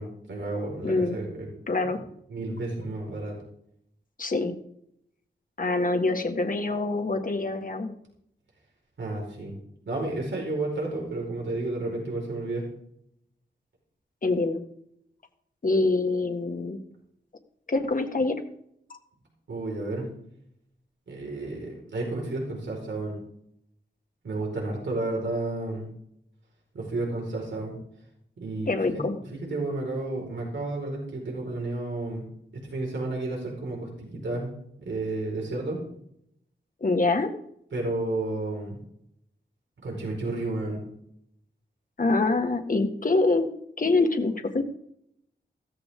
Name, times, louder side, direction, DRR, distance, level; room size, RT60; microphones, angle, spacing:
voice 1, 0.0-1.5 1.9-2.0 2.3-3.4 9.0-9.5 9.9-12.6 19.5-20.1 21.1-23.1 24.2-25.9 26.7-27.8 28.4-29.0 29.3-32.2 32.5-34.5 34.8-35.8 37.7-38.8 39.8-40.8, right 2 dB, 80° right, -1 dB, 4.8 m, -31 dB
voice 2, 0.8-1.2 1.7-2.0 4.2-4.6 5.6-7.9 14.2-14.6 15.6-16.8 17.7-18.4 28.7-29.2 36.8-37.3 42.0-43.5 43.8-44.6, left 3 dB, 45° left, 5 dB, 1.8 m, -25 dB
15.5 x 14.5 x 3.7 m, 0.72 s
wide cardioid pair, 120°, 19 cm